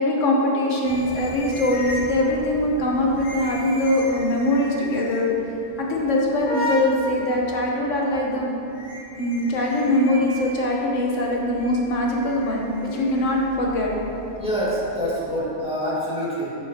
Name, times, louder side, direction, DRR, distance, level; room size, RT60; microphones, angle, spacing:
voice 1, 0.0-5.3 5.8-8.5 9.2-13.9, left 1 dB, 90° left, -2 dB, 1.5 m, -22 dB
sound 1, 0.8-15.7, equal, 25° left, 1.5 m, -37 dB
voice 2, 14.3-16.6, equal, 5° right, -9 dB, 2.1 m, -26 dB
10.5 x 8.3 x 2.9 m, 3.0 s
omnidirectional pair, 1.2 m